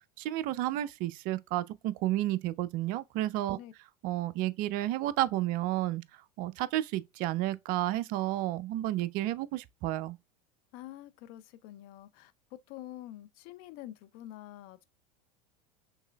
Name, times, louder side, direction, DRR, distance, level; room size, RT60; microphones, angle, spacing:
voice 1, 0.2-3.6 4.0-6.0 6.4-10.2, right 14 dB, 45° right, 0.4 m, -31 dB
voice 2, 10.7-12.3 12.7-14.8, left 13 dB, 45° left, 0.4 m, -47 dB
5.4 x 3.3 x 2.3 m
figure-of-eight pair, 80°, 21 cm